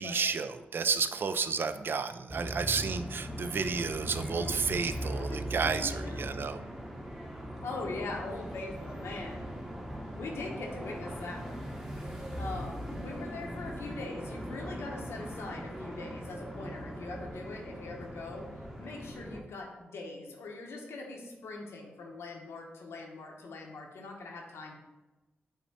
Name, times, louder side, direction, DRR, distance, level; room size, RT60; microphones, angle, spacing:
voice 1, 0.0-6.6, right 5 dB, 60° right, 10 dB, 0.3 m, -31 dB
sound 1, 2.3-19.4, equal, 10° right, 0.8 m, -40 dB
voice 2, 4.0-6.4 7.6-9.5 10.2-11.6 12.4-18.5 18.8-24.8, left 3 dB, 85° left, 0 dB, 0.8 m, -42 dB
5.8 x 2.1 x 4.1 m, 1.1 s
cardioid pair, 55°, 4 cm